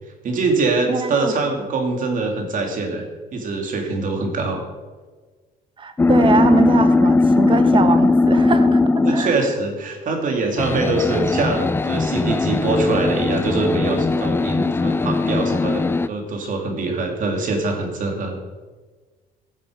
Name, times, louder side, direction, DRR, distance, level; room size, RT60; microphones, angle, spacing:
voice 1, 0.2-3.0 3.3-4.6 9.0-18.4, right 3 dB, 50° right, 3 dB, 2.7 m, -23 dB
voice 2, 0.9-1.3 5.8-9.4, right 5 dB, 30° right, 10 dB, 1.2 m, -22 dB
sound 1, 6.0-9.5 10.6-16.1, left 3 dB, 15° left, 0.4 m, -19 dB
16.0 x 7.6 x 5.1 m, 1.4 s
cardioid pair, 110°, 17 cm